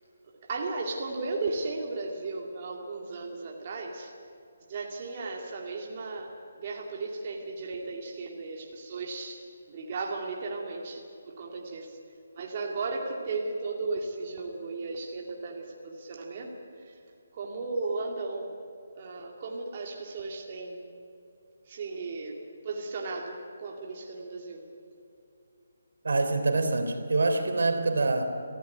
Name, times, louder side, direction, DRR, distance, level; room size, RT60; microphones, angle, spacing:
voice 1, 0.4-4.1 4.7-9.4 9.7-12.0 12.3-16.6 16.9-17.0 17.3-18.5 18.9-20.9 21.7-24.6, right 3 dB, 30° right, 0 dB, 2.2 m, -35 dB
voice 2, 26.0-28.2, right 3 dB, 75° right, 6 dB, 3.3 m, -25 dB
24.0 x 15.5 x 9.6 m, 2.6 s
hypercardioid pair, 175°, 0 cm